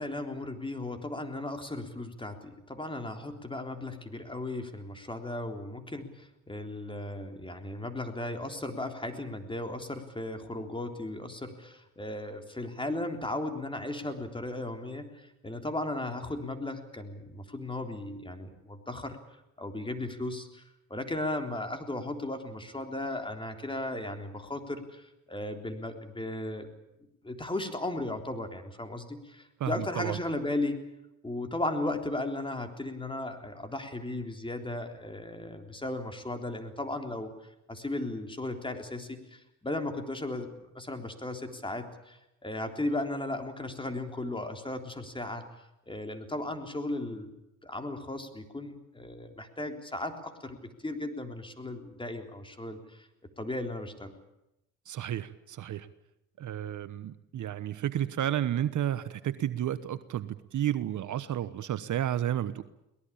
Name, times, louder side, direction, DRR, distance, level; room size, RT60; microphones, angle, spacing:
voice 1, 0.0-19.2 19.6-20.6 20.9-26.7 27.2-30.8 31.2-37.3 37.7-40.5 40.7-47.3 47.6-53.1 53.4-54.1, left 2 dB, 15° left, 5 dB, 3.7 m, -36 dB
voice 2, 29.6-30.2 54.9-55.9 56.4-62.6, right 11 dB, 50° right, 13 dB, 1.2 m, -32 dB
22.5 x 19.0 x 8.7 m, 0.87 s
supercardioid pair, 70°, 37 cm